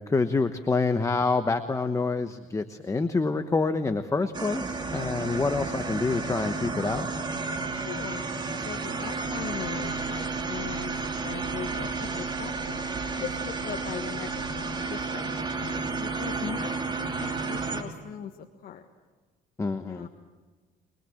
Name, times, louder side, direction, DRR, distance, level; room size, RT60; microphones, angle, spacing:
voice 1, 0.1-7.1 19.6-20.1, left 3 dB, 20° left, 9 dB, 1.1 m, -27 dB
sound 1, 4.3-17.8, right 3 dB, 25° right, 3.0 m, -32 dB
voice 2, 7.7-8.2 8.6-12.8 13.2-16.7 17.0-18.8 19.8-20.1, left 9 dB, 60° left, 3 dB, 1.6 m, -40 dB
sound 2, 9.2-14.9, right 9 dB, 75° right, 3.8 m, -46 dB
24.5 x 22.5 x 7.9 m, 1.4 s
cardioid pair, 110°, 17 cm